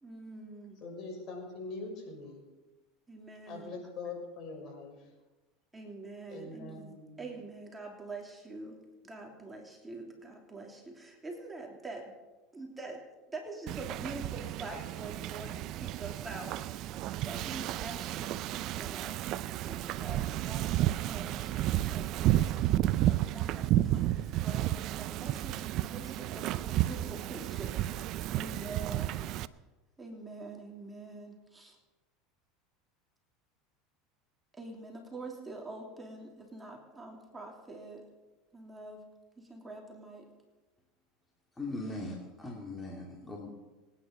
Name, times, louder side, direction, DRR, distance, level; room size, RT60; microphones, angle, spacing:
voice 1, 0.0-0.8 1.1-1.2 3.1-3.8 5.7-12.1 12.5-13.0 13.3-16.9 17.2-25.6 25.9-29.2 30.0-31.8 34.5-38.1 38.5-39.1 39.4-40.3, right 2 dB, 15° right, 1 dB, 3.0 m, -45 dB
voice 2, 0.8-2.4 3.5-5.1 6.3-7.3, left 3 dB, 50° left, 1 dB, 6.5 m, -43 dB
Wind / Ocean, 13.7-29.5, right 14 dB, 55° right, 0.6 m, -32 dB
voice 3, 41.6-43.5, left 2 dB, 10° left, -2 dB, 3.0 m, -40 dB
26.5 x 9.8 x 5.4 m, 1.1 s
supercardioid pair, 105°, 0 cm